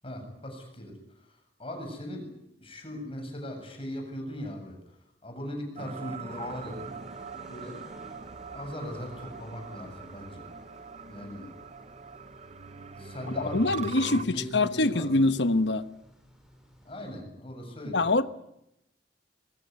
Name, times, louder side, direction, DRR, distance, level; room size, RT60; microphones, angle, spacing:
voice 1, 0.0-7.0 7.5-7.8 8.5-10.5 11.1-11.5 12.9-15.1 16.8-18.1, left 1 dB, 30° left, 4 dB, 7.9 m, -39 dB
sound 1, 5.8-14.2, right 4 dB, 40° right, 0.9 m, -42 dB
sound 2, 6.3-17.2, equal, 5° right, 6.5 m, -56 dB
voice 2, 13.5-14.3 14.5-15.8 17.9-18.2, left 2 dB, 75° left, 12 dB, 1.2 m, -24 dB
23.0 x 20.0 x 9.7 m, 0.81 s
head